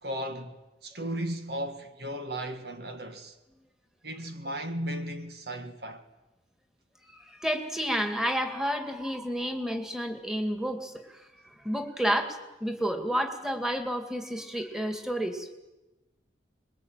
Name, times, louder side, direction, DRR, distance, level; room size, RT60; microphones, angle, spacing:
voice 1, 0.0-3.4 4.0-6.1, right 1 dB, 60° right, 1.8 m, -36 dB
voice 2, 7.1-11.2 11.6-15.5, equal, 5° right, 2.4 m, -30 dB
26.5 x 21.5 x 9.2 m
head